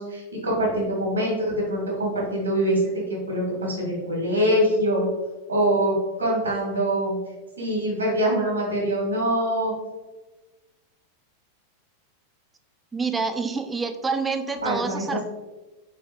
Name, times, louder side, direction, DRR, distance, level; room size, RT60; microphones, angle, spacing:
voice 1, 0.0-2.9 3.3-5.1 5.5-5.9 6.2-7.2 7.6-9.7 14.6-15.2, right 1 dB, 80° right, -2 dB, 1.4 m, -24 dB
voice 2, 12.9-15.2, right 4 dB, 15° right, 8 dB, 0.3 m, -27 dB
3.6 x 3.4 x 3.5 m, 1.2 s
figure-of-eight pair, 90°, 0 cm